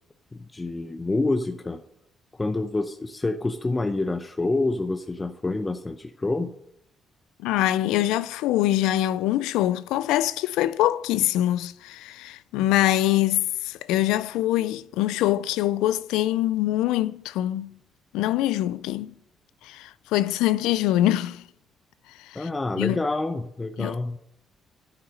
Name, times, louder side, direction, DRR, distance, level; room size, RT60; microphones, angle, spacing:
voice 1, 0.3-1.8 2.3-6.5 22.3-24.2, left 2 dB, 20° left, 0.7 m, -27 dB
voice 2, 7.4-17.7 18.1-19.1 19.6-21.4 22.2-22.5 22.8-23.0 23.8-24.0, left 14 dB, 90° left, 0.4 m, -24 dB
11.0 x 5.8 x 6.4 m
cardioid pair, 80°, 0 cm